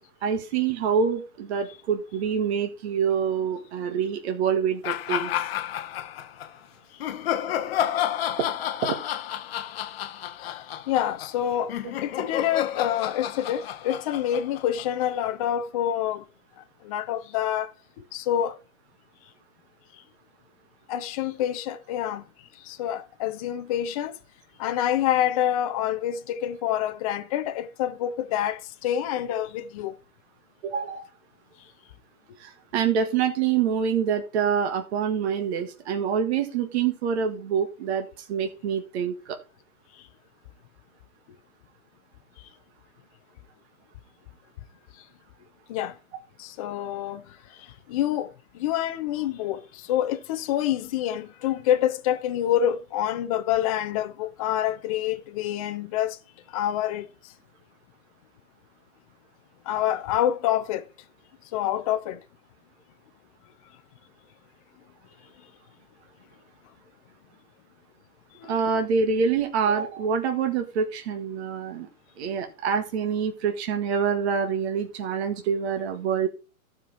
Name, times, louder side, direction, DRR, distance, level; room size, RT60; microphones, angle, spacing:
voice 1, 0.2-5.3 7.5-7.6 8.8-9.0 30.6-31.1 32.4-39.4 68.5-71.9 72.2-76.3, right 7 dB, 45° right, 1.7 m, -26 dB
sound 1, 4.8-6.5 7.0-15.3, left 11 dB, 45° left, 0.9 m, -30 dB
voice 2, 10.4-11.7 12.0-16.2 16.8-17.7 18.1-18.6 20.9-22.3 22.6-24.2 24.6-29.9 45.7-45.9 46.4-56.2 56.5-57.1 59.7-60.9 61.5-62.2 68.4-68.8, left 11 dB, 25° left, 0.6 m, -27 dB
14.0 x 5.2 x 4.4 m
hypercardioid pair, 140°, 43 cm